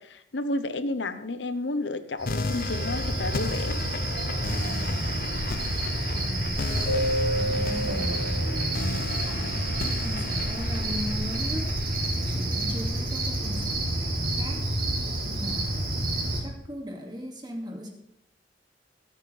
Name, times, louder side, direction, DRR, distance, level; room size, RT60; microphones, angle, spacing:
voice 1, 0.0-3.8, left 2 dB, 80° left, 11 dB, 1.0 m, -31 dB
Cricket, 2.2-16.4, right 1 dB, 50° right, 3.4 m, -29 dB
sound 1, 2.3-13.2, left 4 dB, 50° left, 0.6 m, -36 dB
voice 2, 4.7-5.1 6.1-6.9 7.3-8.8 9.2-11.7 12.2-14.7 15.2-16.1 16.4-17.9, equal, 25° right, 1 dB, 2.3 m, -38 dB
sound 2, 6.9-9.5, right 1 dB, 5° left, 5.0 m, -31 dB
24.5 x 8.8 x 3.4 m, 0.75 s
head